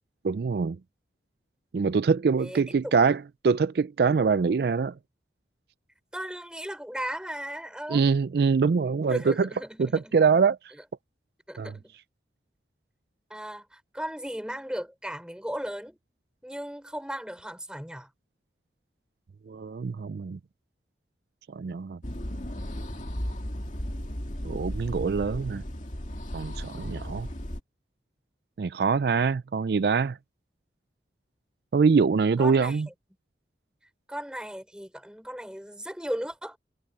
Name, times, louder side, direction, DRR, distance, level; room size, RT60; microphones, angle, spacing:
voice 1, 0.2-0.8 1.7-4.9 7.9-9.5 9.8-10.6 11.6-11.7 19.5-20.4 21.5-22.0 24.4-25.6 26.3-27.3 28.6-30.2 31.7-32.9, right 5 dB, 60° right, 0.4 m, -24 dB
voice 2, 2.4-3.1 6.1-8.1 9.1-10.2 11.5-11.9 13.3-16.0 16.4-18.1 32.4-32.8 34.1-36.6, equal, 5° right, 4.3 m, -36 dB
sound 1, 22.0-27.6, equal, 45° left, 2.4 m, -35 dB
head